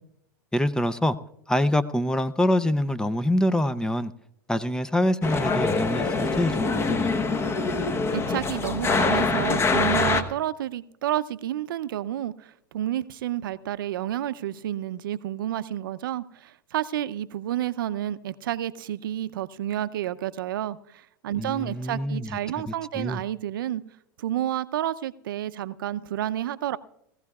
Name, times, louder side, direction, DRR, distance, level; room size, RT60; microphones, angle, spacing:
voice 1, 0.5-1.2 1.5-4.1 4.5-7.1 21.4-22.4 22.6-23.2, left 1 dB, 5° left, 0.5 m, -25 dB
sound 1, 5.2-10.2, left 4 dB, 25° left, 1.0 m, -24 dB
voice 2, 8.1-23.8 24.2-26.8, right 12 dB, 80° right, 0.6 m, -30 dB
20.5 x 15.5 x 2.4 m
hypercardioid pair, 115°, 11 cm